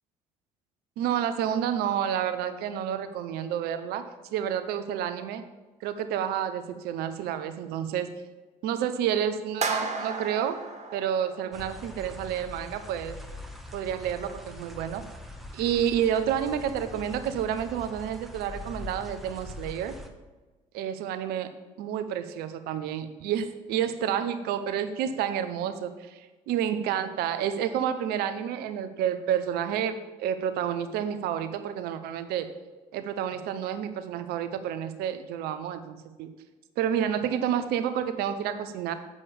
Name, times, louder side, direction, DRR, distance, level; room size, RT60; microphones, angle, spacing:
voice 1, 1.0-4.0 4.3-5.4 5.8-8.1 8.6-10.6 10.9-13.2 13.7-15.0 15.5-20.0 20.7-21.5 21.8-32.5 32.9-36.3 36.8-38.9, right 9 dB, 75° right, 10 dB, 0.9 m, -29 dB
sound 1, 9.6-11.8, right 4 dB, 45° right, 2.0 m, -33 dB
sound 2, 11.5-20.1, left 1 dB, ahead, 1.5 m, -43 dB
8.2 x 7.2 x 7.0 m, 1.2 s
hypercardioid pair, 55°, 16 cm